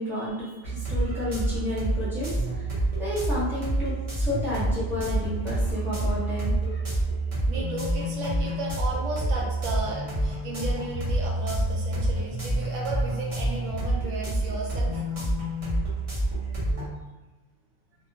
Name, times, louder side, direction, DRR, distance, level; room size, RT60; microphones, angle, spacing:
voice 1, 0.0-2.3 3.0-6.8, left 1 dB, ahead, -10 dB, 0.8 m, -31 dB
sound 1, 0.6-16.9, right 1 dB, 35° right, 0.6 m, -28 dB
voice 2, 7.5-15.0, right 2 dB, 85° right, -3 dB, 1.0 m, -34 dB
2.2 x 2.2 x 2.6 m, 1.1 s
omnidirectional pair, 1.3 m